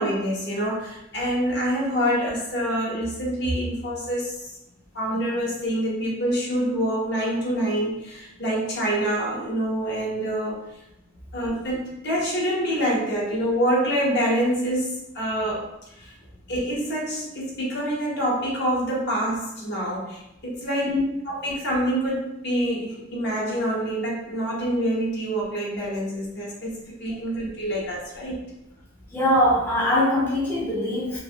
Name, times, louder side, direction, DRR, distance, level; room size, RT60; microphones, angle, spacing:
voice 1, 0.0-4.5 4.9-10.6 11.3-15.6 15.9-16.1 16.5-20.9 21.2-28.4, equal, 60° left, -4 dB, 0.9 m, -26 dB
voice 2, 29.1-31.2, left 1 dB, 10° left, -7 dB, 0.5 m, -22 dB
3.2 x 2.6 x 2.3 m, 0.88 s
head